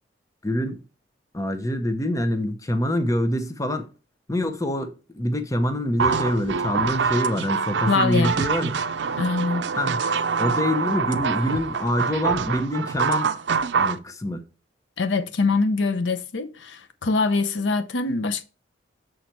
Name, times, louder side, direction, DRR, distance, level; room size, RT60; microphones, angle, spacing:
voice 1, 0.4-0.8 1.3-3.9 4.3-8.7 9.8-10.0 10.4-13.3 13.8-14.4, left 1 dB, 20° left, 0.8 m, -25 dB
sound 1, 6.0-14.0, right 5 dB, 70° right, 0.5 m, -25 dB
voice 2, 7.9-8.3 9.2-9.7 15.0-18.4, left 3 dB, 80° left, 0.7 m, -23 dB
6.5 x 4.3 x 4.5 m
head